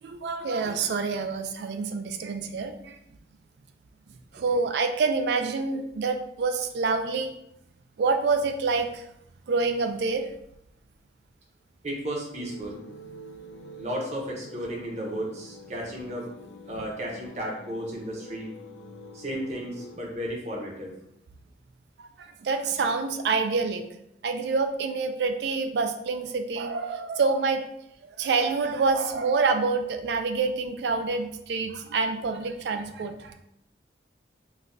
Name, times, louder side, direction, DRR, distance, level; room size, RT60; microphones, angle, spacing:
voice 1, 0.0-3.0 4.3-7.3 8.0-9.0 9.5-10.3 22.0-23.9 24.2-27.6 28.1-33.3, right 4 dB, 75° right, 6 dB, 0.3 m, -27 dB
voice 2, 11.8-12.8 13.7-16.3 16.7-18.6 19.1-20.9, equal, 40° right, -2 dB, 0.7 m, -34 dB
sound 1, 12.4-20.0, equal, 80° left, 0.3 m, -46 dB
4.0 x 2.2 x 2.5 m, 0.78 s
head